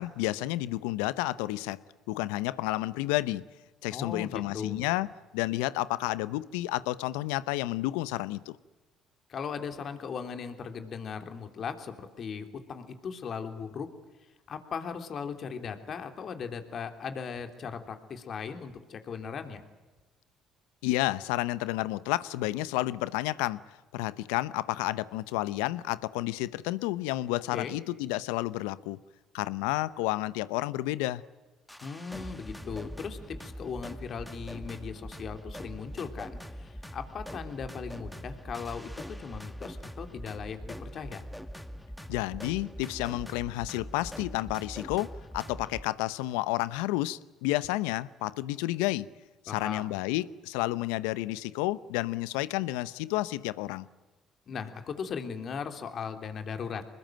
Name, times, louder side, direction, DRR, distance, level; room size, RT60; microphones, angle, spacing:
voice 1, 0.0-1.8 2.1-3.5 3.8-8.6 20.8-23.6 23.9-29.0 29.3-31.2 42.1-45.1 45.3-49.1 49.4-53.9, left 17 dB, 85° left, 0.8 m, -31 dB
voice 2, 3.9-4.8 9.3-13.9 14.5-19.6 27.5-27.8 31.8-41.2 49.5-49.9 54.5-56.9, left 6 dB, 55° left, 3.3 m, -38 dB
sound 1, 31.7-45.8, equal, 5° left, 2.2 m, -43 dB
25.5 x 21.0 x 9.1 m
supercardioid pair, 65°, 0 cm